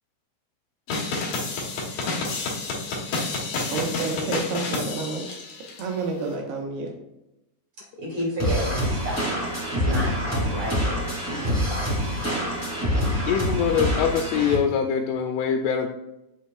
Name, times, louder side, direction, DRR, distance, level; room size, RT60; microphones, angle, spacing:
sound 1, 0.9-5.8, left 3 dB, 65° left, 1.9 m, -29 dB
voice 1, 3.7-5.4 5.8-6.9, right 3 dB, 80° right, 0 dB, 3.1 m, -29 dB
voice 2, 8.0-11.9, equal, 35° right, -4 dB, 2.2 m, -32 dB
sound 2, 8.4-14.6, equal, 10° right, 0.7 m, -26 dB
voice 3, 13.3-15.9, left 7 dB, 85° left, 4 dB, 2.6 m, -23 dB
7.9 x 6.6 x 2.3 m, 0.91 s
omnidirectional pair, 4.6 m